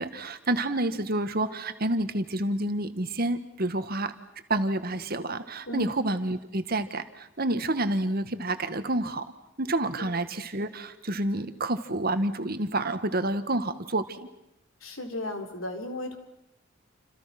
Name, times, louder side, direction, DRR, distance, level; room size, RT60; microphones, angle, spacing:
voice 1, 0.0-4.1 4.5-9.2 9.6-14.2, right 1 dB, 45° right, 10 dB, 1.7 m, -29 dB
voice 2, 14.8-16.2, left 1 dB, 80° left, 6 dB, 4.1 m, -34 dB
29.0 x 27.5 x 6.1 m, 0.82 s
head